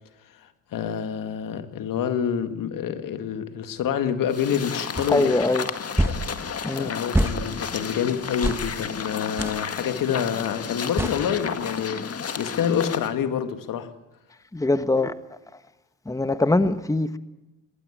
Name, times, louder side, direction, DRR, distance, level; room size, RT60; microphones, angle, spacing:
voice 1, 0.4-5.3 6.8-13.9, left 8 dB, 70° left, 2.0 m, -27 dB
sound 1, 4.3-13.1, left 6 dB, 45° left, 1.9 m, -32 dB
sound 2, 5.0-5.1 6.0-6.2 7.1-7.4 8.4-8.6 9.4-9.6 11.0-11.2, right 1 dB, 5° right, 1.8 m, -23 dB
voice 2, 5.1-5.7 6.6-6.9 14.5-15.2 16.1-17.2, left 2 dB, 10° left, 1.3 m, -22 dB
21.0 x 18.5 x 9.9 m
supercardioid pair, 65°, 34 cm